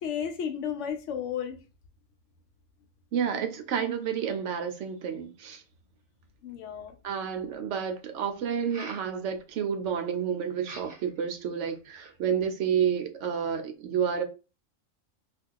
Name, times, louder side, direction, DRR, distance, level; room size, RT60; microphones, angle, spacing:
voice 1, 0.0-1.6 6.4-6.9, left 8 dB, 70° left, 0.8 m, -33 dB
voice 2, 3.1-5.6 7.0-14.2, right 7 dB, 70° right, 0.8 m, -30 dB
sound 1, 6.9-7.0 8.5-9.1 10.6-11.2 11.6-12.2, right 2 dB, 35° right, 0.8 m, -45 dB
2.3 x 2.3 x 3.5 m
omnidirectional pair, 1.3 m